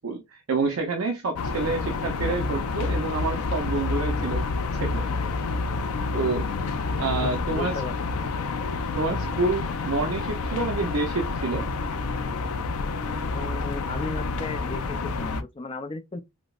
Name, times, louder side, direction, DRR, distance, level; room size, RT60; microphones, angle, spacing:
voice 1, 0.0-4.4 4.7-5.1 6.1-6.5 7.0-7.7 9.0-11.7, right 3 dB, 75° right, 0.6 m, -28 dB
sound 1, 1.4-15.4, left 3 dB, 85° left, 0.4 m, -28 dB
voice 2, 7.2-7.9 8.2-8.3 10.3-10.4 13.3-16.2, left 3 dB, 25° left, 0.3 m, -35 dB
4.9 x 2.0 x 2.3 m
head